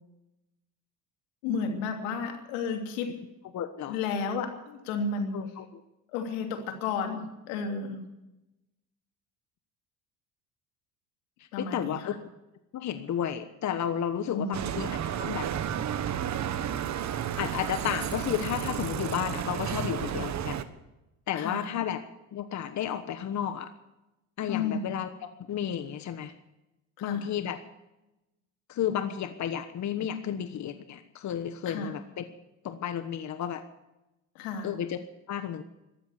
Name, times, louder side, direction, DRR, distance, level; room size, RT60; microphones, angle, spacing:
voice 1, 1.4-3.1 3.9-5.4 6.1-8.0 11.5-12.1 14.3-14.8 21.3-21.7 24.5-24.9 27.0-27.3 31.6-31.9 34.3-34.7, left 5 dB, 90° left, 4 dB, 3.0 m, -32 dB
voice 2, 3.5-4.0 5.3-5.8 11.6-12.1 12.7-14.9 15.2-15.5 17.4-20.6 21.3-22.0 22.3-23.7 24.4-25.1 25.5-26.3 27.0-27.6 28.7-32.2 32.6-33.6 34.6-35.0 35.3-35.6, left 9 dB, 45° left, 9 dB, 1.2 m, -32 dB
Bicycle, 14.5-20.6, right 9 dB, 45° right, 1.3 m, -32 dB
13.5 x 13.0 x 8.2 m, 0.96 s
supercardioid pair, 90°, 38 cm